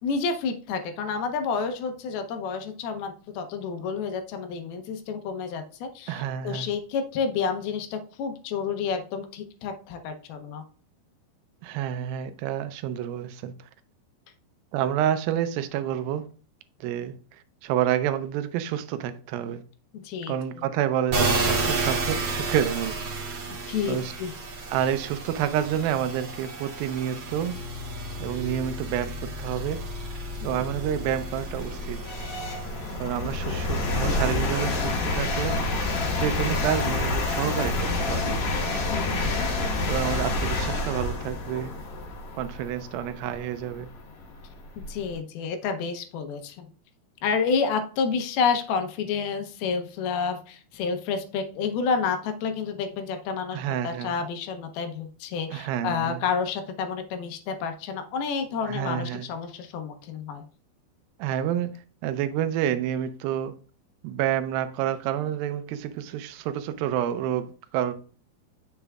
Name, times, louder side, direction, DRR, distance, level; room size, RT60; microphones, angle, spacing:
voice 1, 0.0-10.6 19.9-20.3 23.7-24.3 30.4-30.6 33.4-33.6 38.9-39.5 44.9-46.7 47.2-60.4, left 5 dB, 80° left, 2.7 m, -30 dB
voice 2, 6.1-6.7 11.6-13.5 14.7-16.3 16.8-19.6 20.3-23.0 23.9-24.1 24.7-27.6 28.2-29.8 30.4-32.0 33.0-35.6 36.2-38.4 39.9-41.7 42.4-43.9 53.5-54.1 55.5-56.2 58.7-59.3 61.2-61.7 62.0-63.6 64.0-67.9, right 10 dB, 80° right, 2.4 m, -29 dB
sound 1, 21.1-34.5 34.9-37.8, right 2 dB, 45° right, 1.6 m, -32 dB
sound 2, 29.7-29.8 30.4-45.1, left 2 dB, 55° left, 2.5 m, -28 dB
7.6 x 6.9 x 2.3 m
omnidirectional pair, 4.4 m